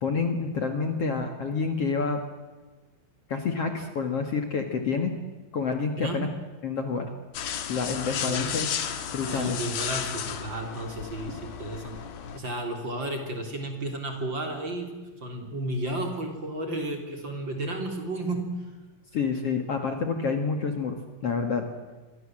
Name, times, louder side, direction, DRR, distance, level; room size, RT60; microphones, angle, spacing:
voice 1, 0.0-2.2 3.3-5.1 5.5-6.3 6.6-7.1 7.7-8.7 9.1-9.6 19.1-21.0 21.2-21.7, left 5 dB, 50° left, 5 dB, 2.4 m, -28 dB
sound 1, 7.3-12.4, left 8 dB, 75° left, 3.5 m, -33 dB
voice 2, 8.0-8.6 9.2-11.9 12.3-14.9 15.2-18.4, right 1 dB, 30° right, 4 dB, 3.7 m, -33 dB
27.0 x 23.5 x 7.7 m, 1.3 s
omnidirectional pair, 4.2 m